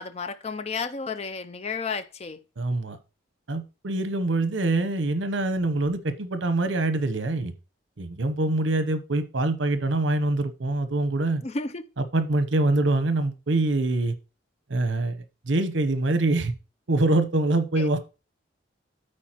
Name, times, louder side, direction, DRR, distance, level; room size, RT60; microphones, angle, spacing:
voice 1, 0.0-2.4 11.4-11.8 17.8-17.9, left 4 dB, 35° left, 0.4 m, -32 dB
voice 2, 2.6-3.0 3.5-7.5 8.0-11.4 12.1-14.1 14.7-15.2 15.5-16.5 16.9-18.0, right 2 dB, 75° right, 0.9 m, -24 dB
13.0 x 4.5 x 3.0 m
head